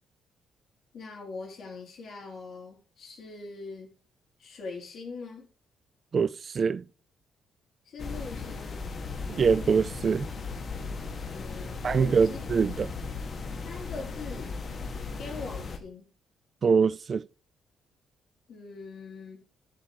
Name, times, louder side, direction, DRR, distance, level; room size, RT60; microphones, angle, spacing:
voice 1, 0.9-3.9 4.4-5.5 7.9-8.9 11.2-12.4 13.6-14.5 15.1-16.1 18.5-19.4, left 4 dB, 60° left, 4.1 m, -42 dB
voice 2, 6.1-6.8 9.3-10.3 11.8-12.9 16.6-17.2, right 5 dB, 45° right, 0.4 m, -24 dB
sound 1, 8.0-15.8, left 4 dB, 40° left, 1.8 m, -37 dB
11.5 x 4.5 x 8.0 m
cardioid pair, 90°, 0 cm